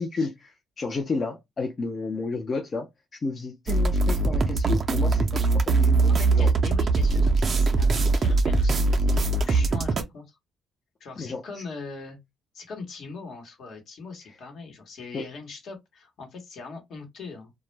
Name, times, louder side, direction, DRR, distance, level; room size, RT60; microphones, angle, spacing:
voice 1, 0.0-2.9 3.1-6.5 11.2-11.6 15.1-15.3, left 3 dB, 40° left, 0.5 m, -32 dB
sound 1, 3.7-10.0, right 3 dB, 45° right, 0.4 m, -21 dB
voice 2, 6.1-10.4 11.0-12.2 12.5-17.5, left 4 dB, 70° left, 1.0 m, -41 dB
2.2 x 2.1 x 3.1 m
cardioid pair, 90°, 0 cm